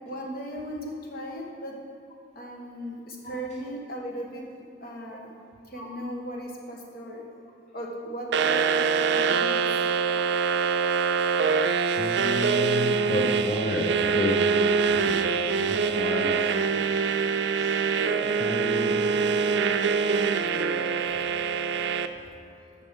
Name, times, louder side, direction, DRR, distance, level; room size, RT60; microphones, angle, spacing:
voice 1, 0.0-1.8 2.3-4.5 4.8-5.3 5.6-7.3 7.7-9.7, equal, 55° left, -1 dB, 1.4 m, -37 dB
sound 1, 8.3-22.1, right 5 dB, 70° right, 0.4 m, -24 dB
voice 2, 12.0-14.7 15.0-15.2 15.6-17.0 17.5-17.8 18.2-19.0, left 1 dB, 40° left, -3 dB, 0.7 m, -31 dB
7.0 x 5.4 x 7.2 m, 2.6 s
head